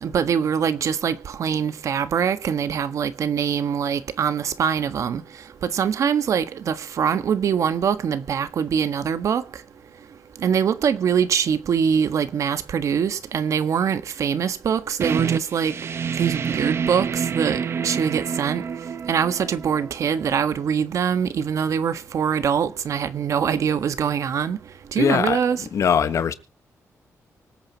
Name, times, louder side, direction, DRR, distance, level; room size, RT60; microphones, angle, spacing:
voice 1, 0.0-5.2 5.6-9.4 10.4-15.7 16.2-18.6 19.1-24.6 24.9-25.6, right 7 dB, 70° right, 1.4 m, -23 dB
sound 1, 15.0-20.5, right 6 dB, 50° right, 1.0 m, -28 dB
voice 2, 25.0-25.4 25.7-26.3, left 7 dB, 65° left, 1.3 m, -21 dB
25.0 x 8.9 x 2.9 m
wide cardioid pair, 135°, 6 cm